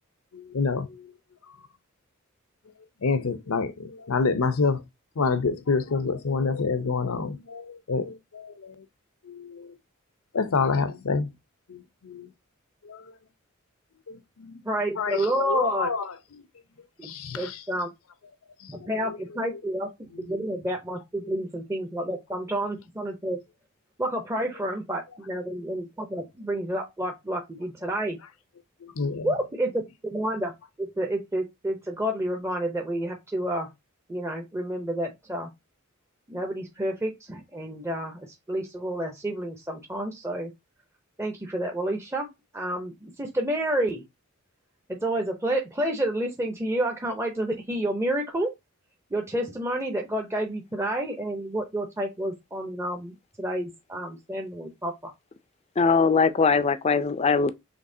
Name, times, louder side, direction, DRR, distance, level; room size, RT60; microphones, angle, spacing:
voice 1, 0.3-1.1 1.5-1.6 3.0-4.8 5.2-8.8 9.2-9.7 10.3-11.3 11.7-12.3 12.8-13.1 14.1-14.6 15.0-16.4 17.0-17.6 18.6-19.2 19.5-19.6 20.1-20.4 21.2-21.3 28.8-29.3, left 4 dB, 80° left, 0.7 m, -28 dB
voice 2, 14.7-15.9 17.0-17.9 18.7-19.9 20.3-23.4 24.0-28.2 29.2-30.5 30.8-33.7 34.1-35.5 36.3-38.2 38.5-40.5 41.2-42.3 42.5-44.0 44.9-48.5 49.1-55.1, right 1 dB, 15° right, 0.6 m, -29 dB
voice 3, 55.8-57.5, left 4 dB, 30° left, 0.4 m, -21 dB
5.2 x 3.3 x 2.7 m
head